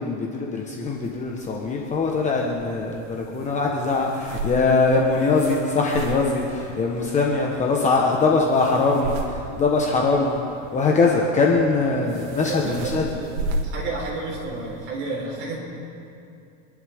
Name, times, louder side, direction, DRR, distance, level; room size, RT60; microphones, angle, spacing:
voice 1, 0.0-13.1, left 3 dB, 20° left, -1 dB, 1.3 m, -22 dB
sound 1, 0.8-14.9, right 2 dB, 85° right, 2.1 m, -36 dB
voice 2, 12.4-13.4 13.6-15.6, right 3 dB, 30° right, -3 dB, 4.2 m, -31 dB
27.0 x 11.0 x 3.6 m, 2.6 s
supercardioid pair, 150°, 39 cm